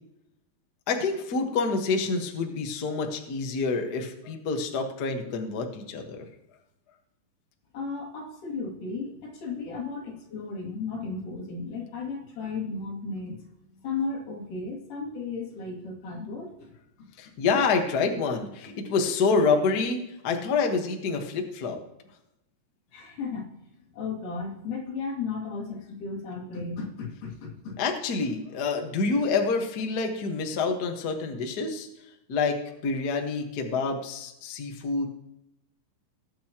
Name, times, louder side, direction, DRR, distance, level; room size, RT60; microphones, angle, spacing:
voice 1, 0.9-6.2 17.2-20.0 20.2-21.8 27.8-31.9 32.3-35.1, left 4 dB, 85° left, 3 dB, 0.8 m, -27 dB
voice 2, 7.7-13.5 13.8-16.7 17.0-17.3 22.9-23.5 23.9-27.8, left 4 dB, 65° left, -1 dB, 3.7 m, -35 dB
19.0 x 8.6 x 2.9 m, 0.84 s
omnidirectional pair, 4.1 m